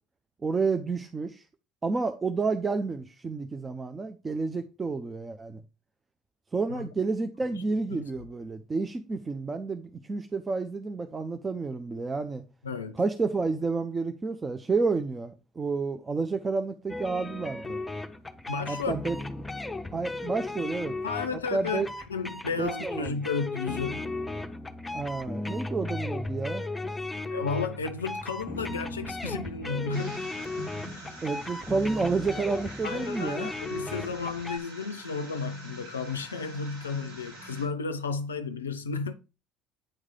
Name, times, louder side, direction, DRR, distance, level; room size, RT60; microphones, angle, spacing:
voice 1, 0.4-1.4 1.8-5.6 6.5-12.4 12.9-17.8 18.7-19.2 19.9-21.0 21.3-21.9 22.6-23.2 24.9-26.7 31.2-33.5, right 4 dB, 25° right, 0.5 m, -30 dB
voice 2, 12.6-13.0 18.5-19.0 21.0-24.0 27.3-30.2 30.8-31.1 32.8-39.1, left 4 dB, 90° left, 0.4 m, -33 dB
sound 1, 16.9-34.6, left 2 dB, 15° left, 0.7 m, -36 dB
sound 2, 29.9-37.7, right 1 dB, 85° right, 3.0 m, -45 dB
8.8 x 3.2 x 3.7 m
hypercardioid pair, 65°, 0 cm